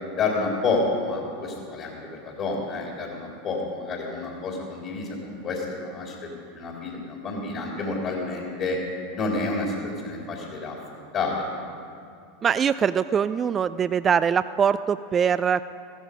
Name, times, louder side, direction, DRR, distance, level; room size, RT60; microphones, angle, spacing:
voice 1, 0.2-1.9 2.2-6.3 6.5-8.8 9.2-9.7 10.0-10.8 11.1-11.3, left 3 dB, 45° left, -1 dB, 3.0 m, -29 dB
voice 2, 12.4-15.7, right 7 dB, 30° right, 13 dB, 0.3 m, -23 dB
14.5 x 14.5 x 5.0 m, 2.4 s
hypercardioid pair, 95°, 0 cm